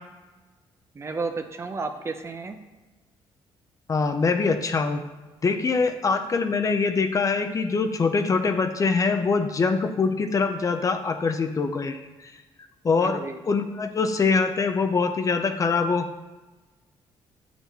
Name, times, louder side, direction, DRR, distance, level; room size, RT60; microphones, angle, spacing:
voice 1, 0.9-2.6 13.0-13.4, right 4 dB, 30° right, 6 dB, 0.7 m, -32 dB
voice 2, 3.9-5.0 5.4-12.0 12.8-13.2 13.5-16.1, left 4 dB, 35° left, 7 dB, 0.7 m, -23 dB
8.0 x 6.0 x 4.2 m, 1.2 s
cardioid pair, 100°, 10 cm